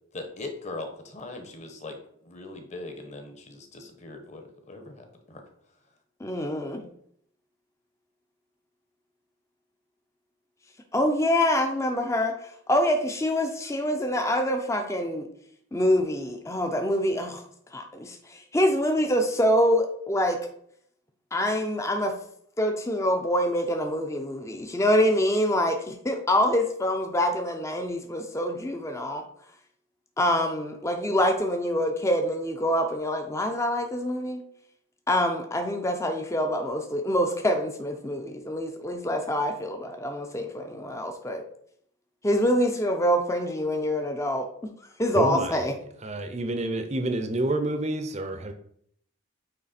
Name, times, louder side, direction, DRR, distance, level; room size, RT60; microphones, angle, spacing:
voice 1, 0.1-2.0 2.2-5.4, left 2 dB, 35° left, 5 dB, 1.0 m, -40 dB
voice 2, 6.2-6.8 10.9-15.3 15.7-17.4 17.7-20.4 21.3-22.2 22.6-29.2 30.2-34.4 35.1-41.4 42.2-44.5 45.0-45.7, equal, 15° left, 4 dB, 0.5 m, -25 dB
voice 3, 45.1-45.6 46.0-48.5, right 2 dB, 35° right, 7 dB, 0.6 m, -28 dB
8.8 x 3.2 x 4.2 m, 0.66 s
head